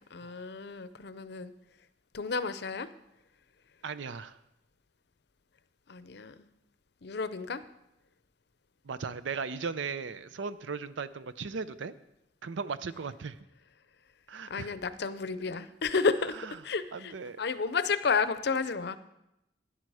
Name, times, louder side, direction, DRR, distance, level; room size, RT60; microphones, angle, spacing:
voice 1, 0.1-1.5 2.1-2.9 5.9-6.3 7.0-7.6 14.5-16.4 16.6-17.1 17.4-19.0, left 4 dB, 60° left, 14 dB, 0.6 m, -31 dB
voice 2, 3.8-4.4 8.8-11.9 12.4-13.4 14.3-14.7 16.3-16.6 16.9-17.4, right 5 dB, 85° right, 14 dB, 0.6 m, -37 dB
12.0 x 10.5 x 4.8 m, 0.87 s
head